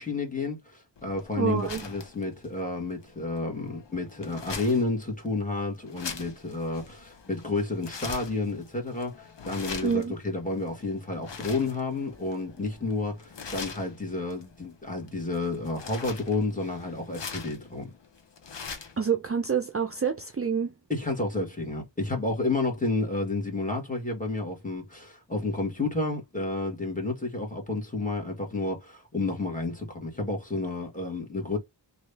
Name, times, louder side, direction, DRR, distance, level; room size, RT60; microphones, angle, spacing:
voice 1, 0.0-17.9 20.9-31.6, left 2 dB, 20° left, 1.6 m, -31 dB
sound 1, 1.0-19.0, left 5 dB, 85° left, 0.9 m, -43 dB
voice 2, 1.3-1.8 9.8-10.1 19.0-20.7, right 6 dB, 35° right, 0.5 m, -27 dB
3.1 x 2.6 x 3.3 m
wide cardioid pair, 75°, 42 cm